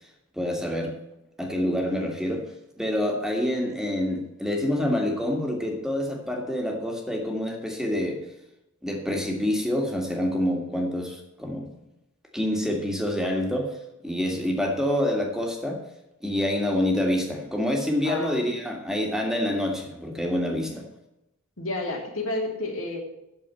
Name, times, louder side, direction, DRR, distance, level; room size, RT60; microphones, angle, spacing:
voice 1, 0.4-1.0 1.4-2.4 2.8-8.2 8.8-11.7 12.3-13.7 14.0-15.8 16.2-20.8, left 1 dB, 5° right, 1 dB, 1.9 m, -27 dB
voice 2, 18.0-18.4 20.5-20.8 21.6-23.0, left 2 dB, 85° left, 1 dB, 2.8 m, -31 dB
8.7 x 7.1 x 8.2 m, 0.90 s
head